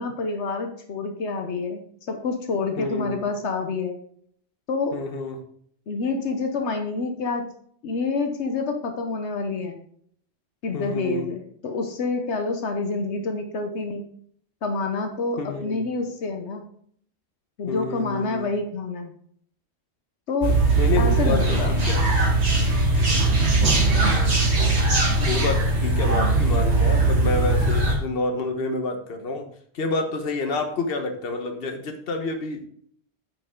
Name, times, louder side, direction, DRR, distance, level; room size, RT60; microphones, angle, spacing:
voice 1, 0.0-1.8 2.1-4.0 4.7-4.9 5.9-7.5 7.8-9.8 10.6-14.0 14.6-16.6 17.6-19.1 20.3-20.6 21.0-21.7, left 3 dB, 80° left, 5 dB, 1.2 m, -27 dB
voice 2, 2.8-3.2 4.9-5.4 10.7-11.3 15.4-15.9 17.7-18.5 20.8-22.0 25.2-29.5 29.7-32.6, left 3 dB, 60° left, 5 dB, 1.3 m, -28 dB
sound 1, 20.4-27.9, right 2 dB, 75° right, 2.1 m, -20 dB
9.0 x 5.4 x 3.7 m, 0.62 s
omnidirectional pair, 1.1 m